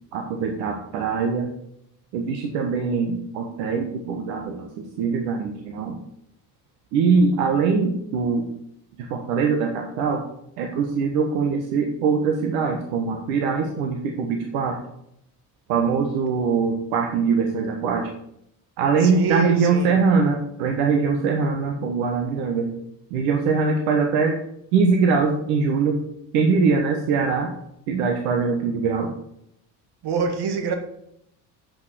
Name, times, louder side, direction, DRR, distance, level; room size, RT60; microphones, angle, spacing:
voice 1, 0.1-1.5 2.1-6.0 6.9-8.5 9.0-10.2 10.6-14.8 15.7-18.1 18.8-22.7 23.1-24.4 24.7-26.0 26.3-27.5 27.9-29.1, right 5 dB, 75° right, 1.2 m, -22 dB
voice 2, 19.0-19.9 30.0-30.7, right 5 dB, 55° right, 1.7 m, -26 dB
7.6 x 5.4 x 6.3 m
hypercardioid pair, 65°, 48 cm